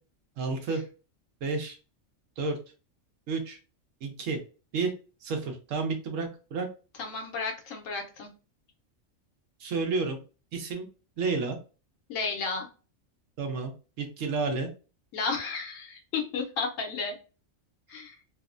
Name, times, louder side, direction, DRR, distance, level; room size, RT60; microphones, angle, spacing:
voice 1, 0.4-0.8 1.4-1.8 2.4-2.6 3.3-3.6 4.0-4.4 4.7-4.9 5.2-6.7 9.6-10.2 10.5-10.8 11.2-11.6 13.4-13.7 14.0-14.7, right 4 dB, 80° right, 3 dB, 1.1 m, -30 dB
voice 2, 7.0-8.3 12.1-12.7 15.1-17.1 17.9-18.1, left 4 dB, 90° left, 3 dB, 1.1 m, -32 dB
3.0 x 2.1 x 2.4 m, 0.34 s
omnidirectional pair, 1.3 m